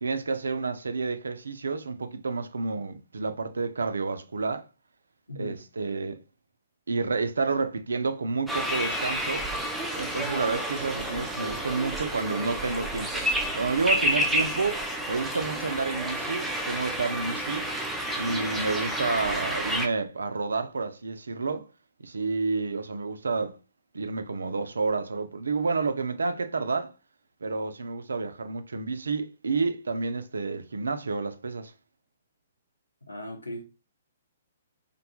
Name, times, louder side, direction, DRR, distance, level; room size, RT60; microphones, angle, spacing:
voice 1, 0.0-4.6 5.4-6.2 6.9-9.5 10.0-13.2 13.5-14.8 15.1-17.7 18.2-21.7 22.0-23.6 23.9-26.9 27.4-31.7, right 4 dB, 70° right, 0.3 m, -30 dB
voice 2, 5.3-5.6 18.4-18.5 33.1-33.6, left 1 dB, 85° left, 0.6 m, -38 dB
sound 1, 8.5-19.9, equal, 5° right, 0.4 m, -30 dB
2.6 x 2.2 x 2.6 m
figure-of-eight pair, 120°, 0 cm